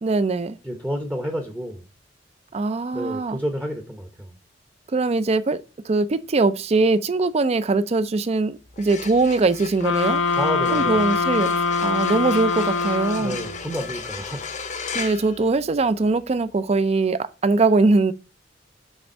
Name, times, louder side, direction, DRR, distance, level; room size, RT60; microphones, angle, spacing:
voice 1, 0.0-0.6 2.5-3.4 4.9-5.6 5.8-10.2 10.7-11.5 11.8-13.4 14.9-18.1, right 3 dB, 35° right, 0.4 m, -21 dB
voice 2, 0.6-1.8 2.9-4.3 10.3-11.1 13.2-14.5, equal, 10° right, 0.8 m, -30 dB
sound 1, 8.6-16.1, left 5 dB, 45° left, 0.7 m, -36 dB
sound 2, 9.8-13.7, left 4 dB, 85° left, 0.6 m, -23 dB
6.6 x 3.4 x 4.4 m
head